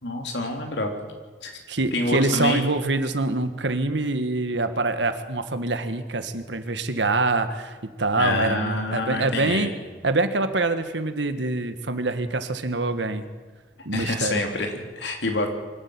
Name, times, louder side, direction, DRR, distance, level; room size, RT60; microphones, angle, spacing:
voice 1, 0.0-0.9 1.4-1.6 1.9-2.6 8.2-9.7 13.9-15.5, left 2 dB, 80° left, 3 dB, 3.3 m, -27 dB
voice 2, 1.7-9.7 10.0-13.3 13.8-14.4, right 2 dB, 85° right, 9 dB, 1.6 m, -25 dB
24.5 x 12.5 x 8.7 m, 1.4 s
head